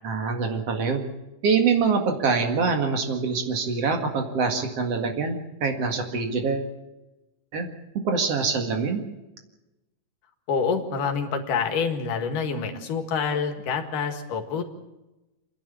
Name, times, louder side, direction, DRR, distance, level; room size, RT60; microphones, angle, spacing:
voice 1, 0.0-1.0 1.4-6.7 7.5-7.7 8.0-9.0, right 5 dB, 50° right, 4 dB, 2.8 m, -25 dB
voice 2, 10.5-14.7, left 5 dB, 75° left, 5 dB, 3.4 m, -27 dB
27.5 x 11.0 x 8.8 m, 1.0 s
omnidirectional pair, 3.7 m